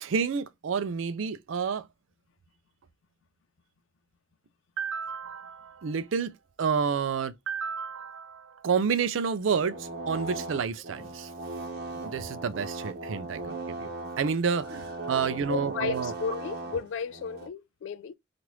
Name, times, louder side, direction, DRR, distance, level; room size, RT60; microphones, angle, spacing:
voice 1, 0.0-1.9 4.8-6.3 6.6-11.3 12.0-16.1, right 6 dB, 85° right, 0.4 m, -30 dB
sound 1, 9.3-17.5, right 3 dB, 55° right, 0.9 m, -38 dB
voice 2, 15.3-18.1, left 6 dB, 75° left, 0.3 m, -34 dB
3.0 x 2.5 x 3.0 m
head